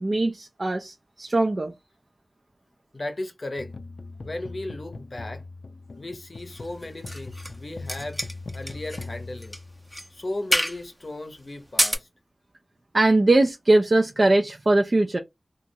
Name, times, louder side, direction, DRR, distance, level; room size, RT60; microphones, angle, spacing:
voice 1, 0.0-1.7 12.9-15.2, right 2 dB, 50° right, 0.4 m, -21 dB
voice 2, 2.9-3.7 4.2-5.4 6.0-8.2 8.5-9.6 10.1-12.1, left 2 dB, 50° left, 0.6 m, -35 dB
sound 1, 3.6-10.2, left 3 dB, 80° left, 0.3 m, -40 dB
sound 2, 6.5-7.6 7.9-9.1 9.4-9.6 9.9-10.1 10.5-10.8 11.6-12.0, equal, ahead, 0.6 m, -27 dB
2.9 x 2.3 x 2.6 m
wide cardioid pair, 70°, 0 cm